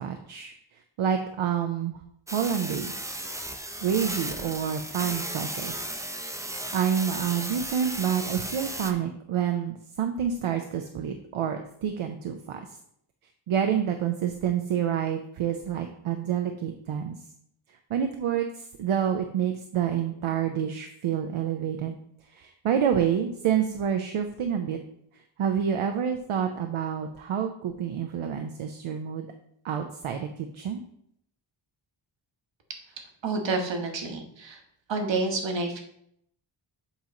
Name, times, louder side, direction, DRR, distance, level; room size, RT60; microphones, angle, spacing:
voice 1, 0.0-2.0 2.3-3.1 3.8-5.9 6.7-12.6 13.5-17.2 17.9-22.0 22.3-24.8 25.4-29.3 29.6-30.8, right 8 dB, 85° right, 5 dB, 0.7 m, -28 dB
sound 1, 2.3-8.9, right 1 dB, 5° right, 0.5 m, -35 dB
voice 2, 33.2-34.6 34.9-35.8, right 3 dB, 65° right, 4 dB, 1.2 m, -29 dB
8.1 x 3.0 x 5.1 m, 0.72 s
wide cardioid pair, 115°, 48 cm